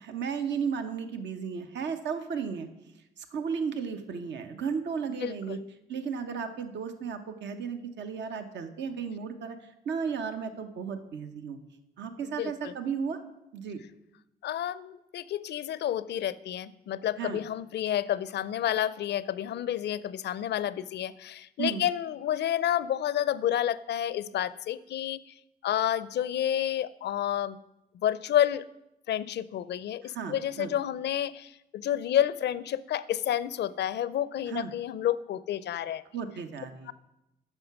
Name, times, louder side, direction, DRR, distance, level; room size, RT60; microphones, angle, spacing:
voice 1, 0.0-2.7 3.2-5.6 5.9-9.6 9.9-11.6 12.0-13.2 13.5-13.8 17.2-17.4 21.6-21.9 30.0-30.7 34.5-34.7 36.1-36.9, right 6 dB, 70° right, 8 dB, 0.8 m, -34 dB
voice 2, 5.1-5.6 12.2-12.7 14.4-25.3 25.6-27.6 27.9-28.7 29.1-36.0 36.9-37.0, left 11 dB, 65° left, 18 dB, 0.5 m, -30 dB
8.9 x 5.9 x 5.9 m, 0.89 s
supercardioid pair, 50°, 19 cm